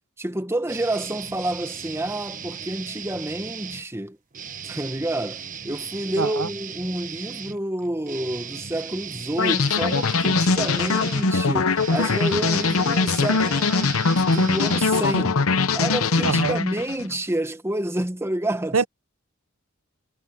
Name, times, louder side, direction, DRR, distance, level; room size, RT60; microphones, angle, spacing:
voice 1, 0.2-4.2 4.7-15.4 15.7-18.8, right 1 dB, 10° right, 1.2 m, -29 dB
sound 1, 0.7-3.8 4.3-15.5, right 7 dB, 40° right, 1.1 m, -37 dB
voice 2, 6.2-6.5 16.2-16.6 18.7-18.9, right 5 dB, 85° right, 0.8 m, -23 dB
sound 2, 9.4-17.1, left 4 dB, 85° left, 0.9 m, -22 dB
head